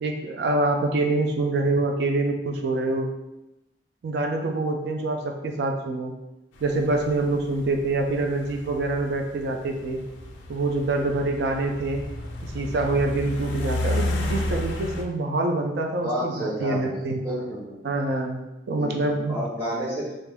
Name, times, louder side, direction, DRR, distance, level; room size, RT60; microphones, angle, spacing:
voice 1, 0.0-3.1 4.0-6.1 6.6-10.0 10.5-12.0 12.5-17.3 17.8-18.4 18.7-19.4, right 2 dB, 60° right, 3 dB, 0.4 m, -25 dB
sound 1, 6.6-15.0, left 1 dB, 80° left, 0.4 m, -31 dB
voice 2, 16.0-17.8 18.7-20.1, equal, 30° right, -12 dB, 1.0 m, -31 dB
2.5 x 2.2 x 3.4 m, 0.94 s
head